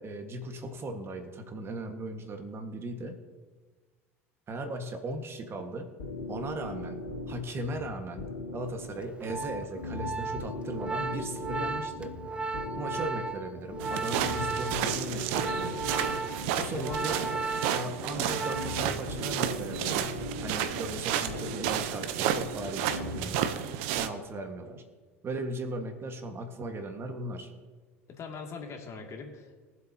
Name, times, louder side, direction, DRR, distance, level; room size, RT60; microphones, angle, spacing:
voice 1, 0.0-3.2 4.5-5.9 6.3-7.0 7.3-12.1 12.8-15.8 16.6-17.2 17.7-20.1 20.4-23.7 23.9-24.8 25.2-27.5, right 2 dB, 35° right, 5 dB, 1.7 m, -37 dB
sound 1, 6.0-23.5, left 2 dB, 85° left, 3.3 m, -40 dB
Organ, 9.0-19.0 19.3-19.6, right 3 dB, 15° right, 0.9 m, -35 dB
sound 2, 13.8-24.1, right 10 dB, 65° right, 0.9 m, -32 dB
voice 2, 16.6-17.0 18.0-18.3 28.1-29.6, left 5 dB, 40° left, 1 dB, 2.6 m, -41 dB
23.0 x 7.8 x 2.9 m, 1.4 s
hypercardioid pair, 75°, 7 cm